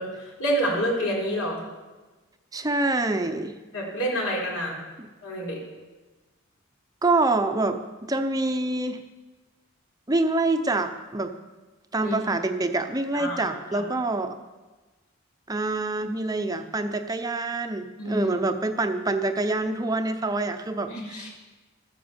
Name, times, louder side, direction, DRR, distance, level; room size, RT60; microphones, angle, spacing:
voice 1, 0.0-1.6 3.7-4.8 5.2-5.6 12.0-12.2 13.1-13.8 18.0-18.3 20.9-21.3, equal, 85° left, -3 dB, 4.2 m, -28 dB
voice 2, 2.5-3.5 7.0-9.0 10.1-11.3 11.9-14.4 15.5-21.3, right 2 dB, 15° right, 7 dB, 0.6 m, -26 dB
13.5 x 10.5 x 7.1 m, 1.2 s
head